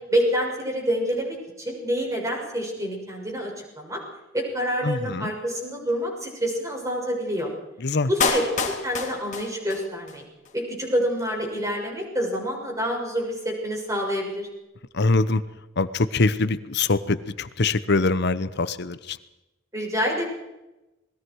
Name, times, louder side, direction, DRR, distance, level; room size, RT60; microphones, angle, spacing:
voice 1, 0.1-4.0 4.3-7.5 8.1-8.4 8.8-10.2 10.5-14.5 19.7-20.3, equal, 15° right, 0 dB, 6.5 m, -27 dB
voice 2, 4.8-5.3 7.8-8.1 14.9-15.4 15.8-19.2, left 3 dB, 55° left, 14 dB, 0.9 m, -23 dB
Clapping, 8.2-10.2 10.5-10.6, left 5 dB, 35° left, 2.6 m, -27 dB
28.0 x 21.0 x 4.8 m, 0.99 s
head